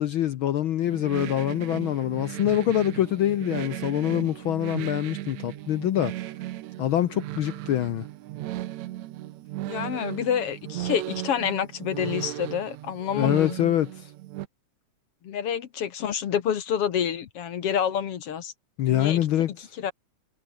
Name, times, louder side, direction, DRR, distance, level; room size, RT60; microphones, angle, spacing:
voice 1, 0.0-6.1 6.8-8.0 13.1-14.1 18.8-19.7, left 12 dB, 80° left, 1.1 m, -25 dB
sound 1, 0.8-14.5, right 15 dB, 75° right, 2.1 m, -36 dB
voice 2, 9.7-13.5 15.2-18.5 18.9-19.3 19.8-19.9, left 8 dB, 60° left, 2.1 m, -28 dB
omnidirectional pair, 3.3 m